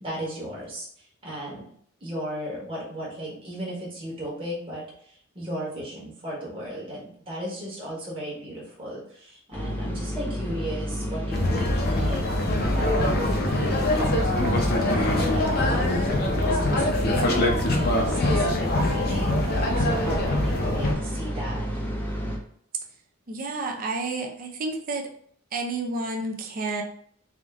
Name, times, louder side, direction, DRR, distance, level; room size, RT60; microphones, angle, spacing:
voice 1, 0.0-1.6 2.0-12.2 12.6-21.6, right 1 dB, 25° right, -6 dB, 1.2 m, -35 dB
sound 1, 9.5-22.4, equal, 10° left, 0.5 m, -31 dB
sound 2, 11.3-20.9, left 1 dB, 45° left, 0.6 m, -24 dB
voice 2, 23.3-25.1 25.5-26.8, right 3 dB, 40° right, 1 dB, 0.5 m, -30 dB
3.6 x 2.5 x 3.5 m, 0.62 s
head